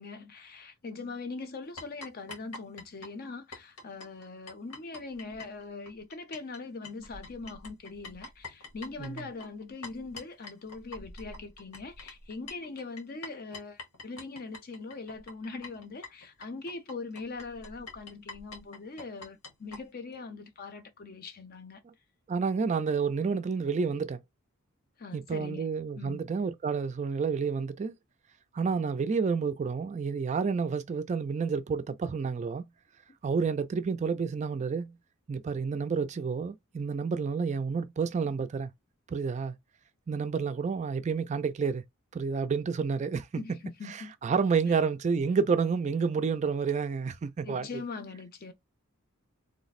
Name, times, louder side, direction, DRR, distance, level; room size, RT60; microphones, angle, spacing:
voice 1, 0.0-21.8 25.0-25.7 25.9-26.2 43.4-44.1 44.6-44.7 47.4-48.5, left 3 dB, 45° left, 0.6 m, -41 dB
sound 1, 1.8-6.6 6.8-19.8, left 2 dB, 85° left, 1.1 m, -46 dB
voice 2, 22.3-24.2 25.1-27.9 28.5-32.6 33.2-34.9 35.3-38.7 39.1-39.6 40.1-41.8 42.1-43.3 43.9-47.7, right 5 dB, 35° right, 0.3 m, -29 dB
3.2 x 2.0 x 4.0 m
head